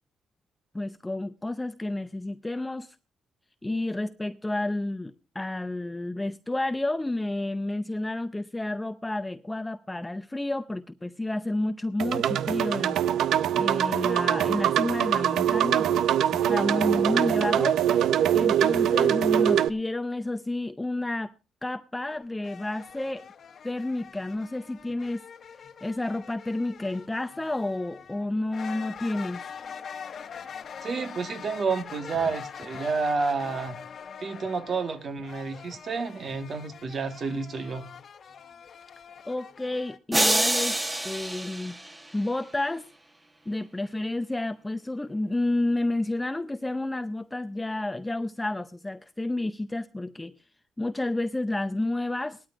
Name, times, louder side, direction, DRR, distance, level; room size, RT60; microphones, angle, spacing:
voice 1, 0.7-3.0 3.6-13.0 13.5-17.8 18.3-21.3 21.6-23.2 23.6-25.2 25.8-29.5 39.3-41.8 42.1-42.9 43.5-50.3 50.8-52.5, left 2 dB, 10° left, 0.6 m, -30 dB
sound 1, 12.0-19.7, right 10 dB, 75° right, 0.6 m, -23 dB
sound 2, 22.1-40.0, left 7 dB, 50° left, 1.2 m, -44 dB
voice 2, 30.8-33.8 34.2-37.9, right 4 dB, 45° right, 1.6 m, -30 dB
sound 3, 40.1-42.4, right 1 dB, 15° right, 1.6 m, -27 dB
19.5 x 13.0 x 2.5 m
cardioid pair, 105°, 0 cm